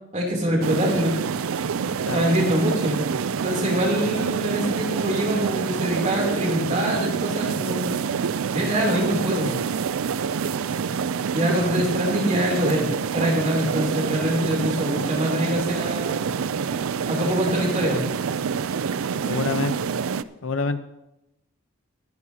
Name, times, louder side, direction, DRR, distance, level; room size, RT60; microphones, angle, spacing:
voice 1, 0.1-1.1 2.1-3.0 3.4-8.1 8.5-9.5 11.3-16.3 17.1-18.0, equal, 35° right, -1 dB, 3.2 m, -24 dB
sound 1, 0.6-20.2, right 6 dB, 85° right, 0.4 m, -27 dB
voice 2, 19.3-20.0 20.4-20.8, left 4 dB, 75° left, 11 dB, 0.8 m, -27 dB
21.5 x 9.7 x 2.9 m, 0.89 s
head